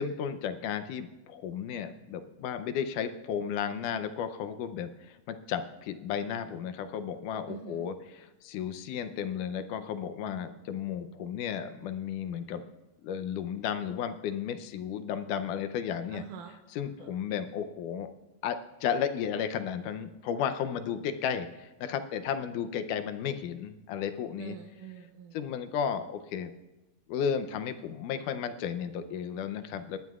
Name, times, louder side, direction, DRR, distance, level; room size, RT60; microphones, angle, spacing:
voice 1, 0.0-12.6 13.0-16.2 16.7-18.1 18.4-24.6 25.3-26.5 27.1-30.0, left 8 dB, 80° left, 9 dB, 2.2 m, -33 dB
voice 2, 7.5-7.9 16.1-16.6 16.9-17.1 24.4-25.4, right 9 dB, 85° right, 3 dB, 2.3 m, -45 dB
27.0 x 11.5 x 2.4 m, 1.0 s
omnidirectional pair, 3.7 m